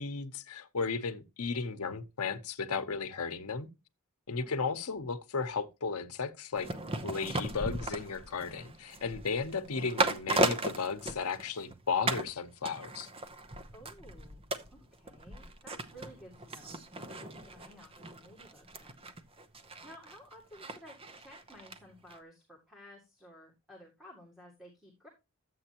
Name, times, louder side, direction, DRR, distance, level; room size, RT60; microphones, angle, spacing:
voice 1, 0.0-3.7 4.3-6.7 7.0-13.1, left 5 dB, 90° left, 0.9 m, -35 dB
sound 1, 6.6-11.7 12.1-12.3 12.7-21.8 22.1-22.2, right 2 dB, 25° right, 0.8 m, -36 dB
voice 2, 13.7-19.1 19.8-25.1, equal, ahead, 2.1 m, -55 dB
11.5 x 7.7 x 2.9 m
head